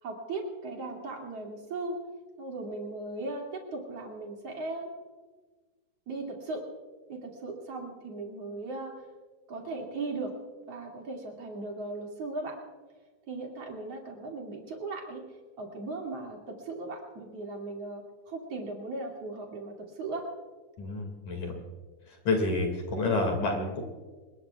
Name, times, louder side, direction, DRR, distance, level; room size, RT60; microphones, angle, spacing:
voice 1, 0.0-2.0 2.4-4.9 6.1-6.7 7.1-9.1 9.5-10.3 10.7-12.6 13.3-15.2 15.6-20.3, right 2 dB, 40° right, -1 dB, 2.6 m, -37 dB
voice 2, 20.8-21.5 22.1-23.8, left 3 dB, 45° left, 3 dB, 3.1 m, -29 dB
27.5 x 21.0 x 2.4 m, 1.3 s
omnidirectional pair, 5.7 m